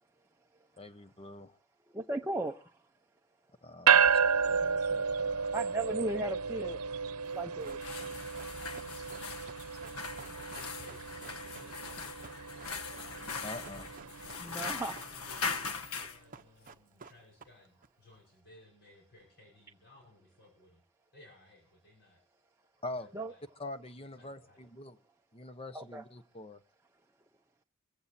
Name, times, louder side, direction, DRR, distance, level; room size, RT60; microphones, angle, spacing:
voice 1, 0.8-1.6 3.6-4.1 4.5-5.5 13.4-13.9 22.8-23.1 23.6-25.0 25.3-26.6, left 2 dB, 25° left, 1.0 m, -44 dB
voice 2, 1.9-2.8 5.5-6.8 7.3-7.8 14.4-15.0 23.1-23.3 25.7-26.0, right 2 dB, 10° right, 0.7 m, -36 dB
sound 1, 3.9-15.4, right 6 dB, 90° right, 0.8 m, -32 dB
Run, 7.2-17.9 18.1-18.2, right 5 dB, 40° right, 0.9 m, -54 dB
sound 2, 7.6-16.2, left 5 dB, 80° left, 1.2 m, -41 dB
voice 3, 10.2-12.4 14.4-20.8 21.1-22.2 22.9-23.4 24.0-24.7, left 2 dB, 50° left, 6.0 m, -60 dB
24.0 x 15.5 x 2.7 m
head